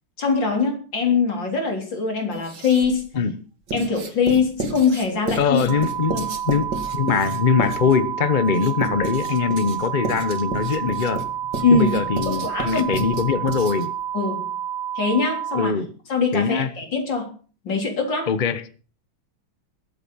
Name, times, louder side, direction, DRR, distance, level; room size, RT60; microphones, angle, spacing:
voice 1, 0.2-3.1 3.7-5.7 6.1-6.3 11.6-11.9 12.3-12.9 14.1-14.5 14.9-15.8 16.1-17.3 17.6-18.3, left 5 dB, 60° left, 4.4 m, -22 dB
Writing, 2.3-3.0 3.7-14.0, right 3 dB, 55° right, 2.5 m, -32 dB
voice 2, 5.4-6.2 6.5-11.3 11.7-13.9 15.5-15.9 16.3-16.7 18.3-18.6, left 6 dB, 40° left, 0.6 m, -22 dB
sound 1, 5.7-15.7, right 9 dB, 75° right, 1.9 m, -29 dB
21.5 x 8.1 x 5.6 m
omnidirectional pair, 2.3 m